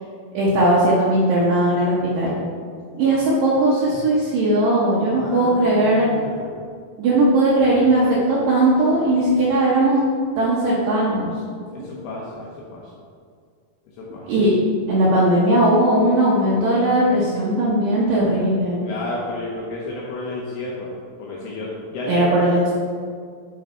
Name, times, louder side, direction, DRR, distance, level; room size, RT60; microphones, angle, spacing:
voice 1, 0.3-2.4 2.9-6.1 7.0-10.0 10.4-11.3 11.8-11.9 14.3-14.5 14.9-18.8 22.1-22.7, right 1 dB, 70° right, -7 dB, 2.2 m, -18 dB
voice 2, 5.1-6.6 11.7-12.9 14.0-14.3 18.8-20.9 21.2-22.3, left 2 dB, 75° left, -4 dB, 2.4 m, -32 dB
9.1 x 4.0 x 4.5 m, 2.1 s
omnidirectional pair, 5.3 m